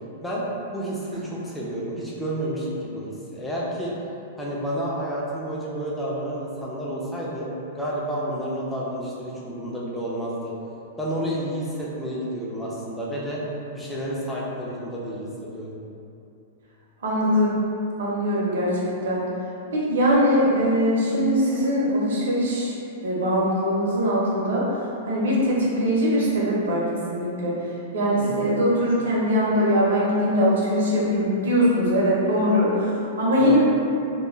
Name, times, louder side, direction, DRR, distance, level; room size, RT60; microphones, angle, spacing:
voice 1, 0.7-3.9 4.4-7.5 7.7-10.5 11.0-13.4 13.7-15.8 28.2-28.5 33.4-33.6, equal, 5° left, -6 dB, 0.4 m, -30 dB
voice 2, 17.0-17.6 18.0-19.2 19.7-22.7 23.0-24.7 25.1-26.8 27.1-27.5 27.9-33.6, equal, 80° right, -5 dB, 0.7 m, -21 dB
2.2 x 2.1 x 3.1 m, 2.7 s
supercardioid pair, 160°, 0 cm